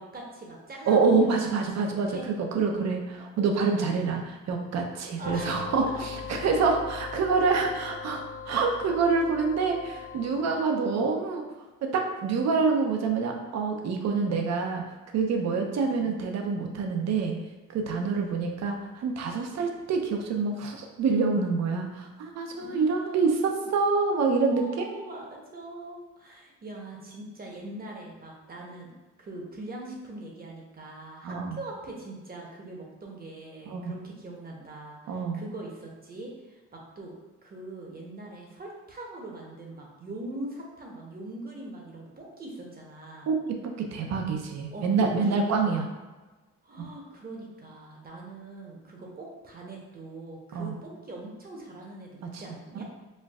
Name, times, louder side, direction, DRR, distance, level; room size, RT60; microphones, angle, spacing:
voice 1, 0.0-1.3 1.7-2.3 5.2-5.6 5.9-6.0 10.5-11.0 15.8-16.2 18.1-18.5 22.6-23.5 24.5-28.9 29.2-37.1 37.4-43.3 44.7-45.8 46.6-52.8, right 2 dB, 30° right, -1 dB, 0.8 m, -42 dB
voice 2, 0.9-2.1 2.5-11.4 11.8-14.8 15.1-17.4 17.7-24.9 31.2-31.6 33.7-33.9 35.1-35.4 43.3-45.8 46.8-46.9 50.5-50.7, right 4 dB, 60° right, 3 dB, 0.6 m, -26 dB
sound 1, 5.2-10.6, left 6 dB, 25° left, 0.4 m, -40 dB
4.4 x 2.3 x 2.3 m, 1.2 s
cardioid pair, 90°, 30 cm